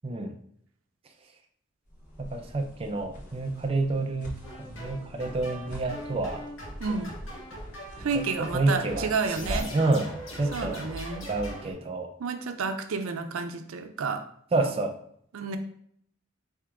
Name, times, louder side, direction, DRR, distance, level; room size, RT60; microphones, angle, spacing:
voice 1, 0.0-0.4 2.2-6.5 8.1-10.9 11.3-12.1 14.5-14.9, right 2 dB, 30° right, 4 dB, 0.4 m, -29 dB
sound 1, 1.9-9.9, equal, 40° left, 1.1 m, -44 dB
sound 2, 4.4-11.7, equal, 85° left, 1.4 m, -40 dB
voice 2, 6.8-7.1 8.0-9.7 10.5-11.3 12.2-14.2 14.6-14.7 15.3-15.6, right 4 dB, 90° right, 7 dB, 0.5 m, -30 dB
3.6 x 2.9 x 4.7 m, 0.66 s
head